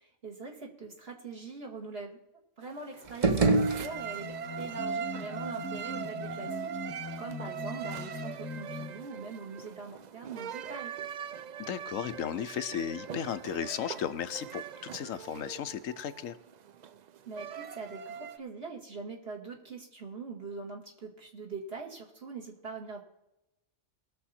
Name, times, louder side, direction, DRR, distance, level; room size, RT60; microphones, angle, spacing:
voice 1, 0.0-2.2 2.6-10.9 17.3-23.0, right 4 dB, 50° right, -1 dB, 2.3 m, -43 dB
sound 1, 2.6-18.4, right 7 dB, 70° right, 0.4 m, -41 dB
sound 2, 3.0-4.5, right 3 dB, 30° right, 0.9 m, -27 dB
sound 3, 3.9-9.1, left 3 dB, 20° left, 0.9 m, -41 dB
voice 2, 11.6-16.4, left 9 dB, 90° left, 11 dB, 1.1 m, -35 dB
20.5 x 7.0 x 4.3 m, 0.91 s
omnidirectional pair, 1.3 m